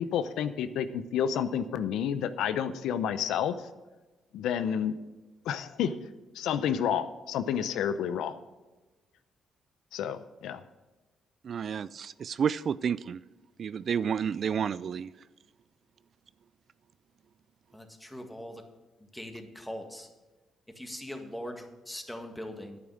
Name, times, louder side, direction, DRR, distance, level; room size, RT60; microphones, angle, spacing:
voice 1, 0.0-3.6 4.3-4.9 5.5-5.9 6.3-8.4 9.9-10.6, left 8 dB, 85° left, 0.7 m, -30 dB
voice 2, 11.4-13.2 13.6-15.1, right 7 dB, 55° right, 0.3 m, -30 dB
voice 3, 17.7-18.6 19.1-20.1 20.8-22.8, equal, 5° left, 1.8 m, -41 dB
11.0 x 8.8 x 6.4 m
cardioid pair, 90°, 0 cm